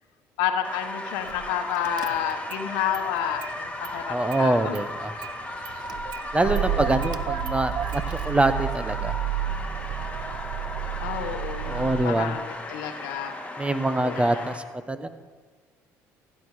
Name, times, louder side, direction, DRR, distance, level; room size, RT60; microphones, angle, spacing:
voice 1, 0.4-4.8 6.4-7.0 11.0-13.3 14.0-14.4, left 9 dB, 80° left, 8 dB, 1.1 m, -30 dB
sound 1, 0.6-14.6, left 1 dB, 20° left, 2.3 m, -36 dB
Car / Engine starting, 1.3-1.5 1.8-2.7 2.9-4.0 4.3-12.1, right 11 dB, 65° right, 0.6 m, -32 dB
voice 2, 4.1-5.1 6.3-9.1 11.6-12.4 13.6-15.1, right 2 dB, 15° right, 11 dB, 1.1 m, -25 dB
15.5 x 8.8 x 4.9 m, 1.4 s
hypercardioid pair, 65°, 8 cm